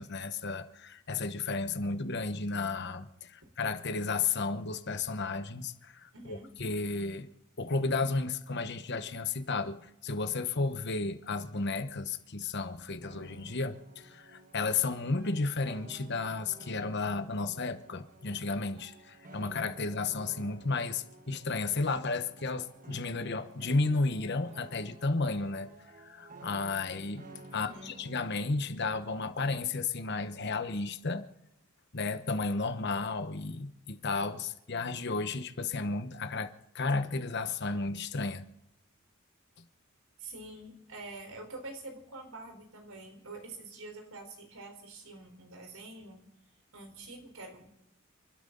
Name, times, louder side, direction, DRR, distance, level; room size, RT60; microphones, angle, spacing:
voice 1, 0.0-7.3 7.6-25.7 26.0-27.2 27.5-31.3 31.9-36.5 36.7-38.4, left 3 dB, 50° left, 1.1 m, -33 dB
voice 2, 6.1-6.5 27.5-27.9 40.2-46.2 46.7-47.7, right 2 dB, 80° right, 4.3 m, -46 dB
sound 1, 13.0-28.5, right 2 dB, 40° right, 1.3 m, -53 dB
29.0 x 12.5 x 4.0 m
head